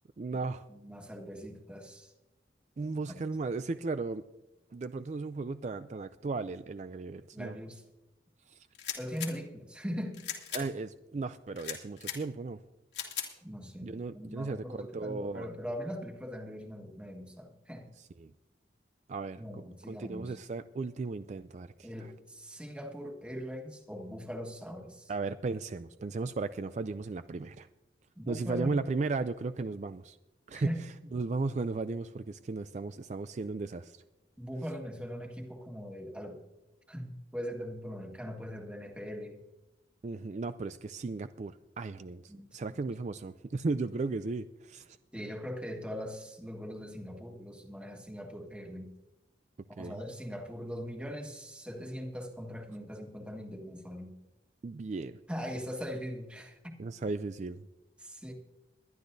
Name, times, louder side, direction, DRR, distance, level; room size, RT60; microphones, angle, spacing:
voice 1, 0.2-0.7 2.8-4.2 4.7-7.5 8.5-8.7 10.5-12.6 13.8-15.5 18.0-18.3 19.1-22.1 25.1-27.7 28.3-30.2 30.5-30.7 31.1-34.0 40.0-45.0 49.8-50.0 54.6-55.2 56.8-57.7, right 3 dB, 40° right, 11 dB, 0.3 m, -36 dB
voice 2, 0.7-2.1 3.1-3.2 7.3-7.8 9.0-10.2 10.6-10.7 13.4-17.9 19.4-20.4 21.8-25.1 28.2-28.8 30.5-31.2 34.4-36.4 36.9-39.4 42.3-42.6 45.1-48.9 49.7-54.1 55.3-56.8 58.0-58.3, equal, 5° right, 2 dB, 1.5 m, -41 dB
sound 1, 8.7-9.3 10.1-10.6 11.6-12.2 12.9-13.3, left 9 dB, 90° left, 2.5 m, -38 dB
22.0 x 11.5 x 2.6 m, 1.0 s
head